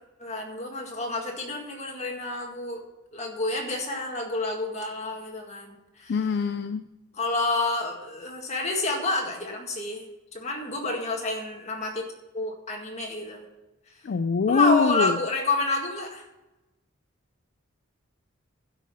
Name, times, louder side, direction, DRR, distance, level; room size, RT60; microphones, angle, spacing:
voice 1, 0.2-2.8 3.1-6.2 7.1-10.1 10.3-12.0 12.3-13.4 14.5-16.2, left 2 dB, 30° left, 1 dB, 1.9 m, -29 dB
voice 2, 6.1-6.8 14.0-15.2, left 5 dB, 50° left, 11 dB, 0.4 m, -23 dB
12.0 x 5.7 x 7.6 m, 1.0 s
head